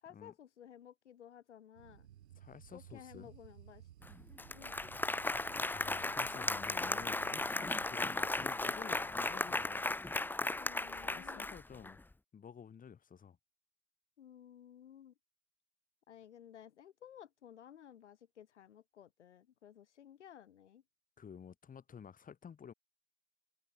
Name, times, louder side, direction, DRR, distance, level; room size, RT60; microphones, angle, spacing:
voice 1, 0.0-2.1 2.7-3.9 4.5-4.8 10.6-11.5 14.2-15.1 16.1-20.8, left 10 dB, 75° left, 2.9 m, -56 dB
sound 1, 1.7-9.7, right 11 dB, 75° right, 4.2 m, -58 dB
voice 2, 2.4-3.3 5.7-9.9 10.6-12.0 12.3-13.4 21.2-22.7, left 7 dB, 25° left, 3.9 m, -52 dB
Applause, 4.0-4.1 4.4-11.9, left 2 dB, 5° left, 0.9 m, -36 dB
hypercardioid pair, 90°, 35 cm